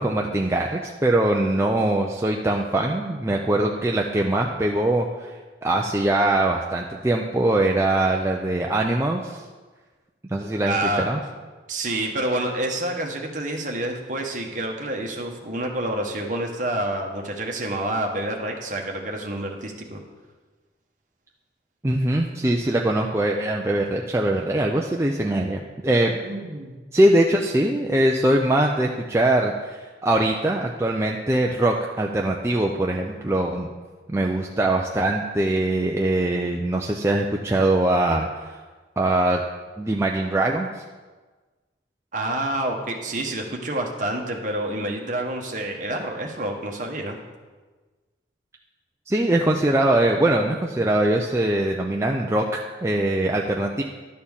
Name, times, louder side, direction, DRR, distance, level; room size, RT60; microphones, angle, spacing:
voice 1, 0.0-5.3 5.6-9.4 10.3-11.2 21.8-26.2 26.9-33.7 34.1-38.6 39.0-39.4 39.8-40.8 49.1-52.5 52.8-53.8, right 1 dB, 15° right, 0 dB, 0.4 m, -22 dB
voice 2, 10.6-11.1 11.7-20.0 26.2-26.8 42.1-47.2, right 1 dB, 45° right, 1 dB, 1.2 m, -28 dB
11.5 x 4.3 x 7.1 m, 1.3 s
head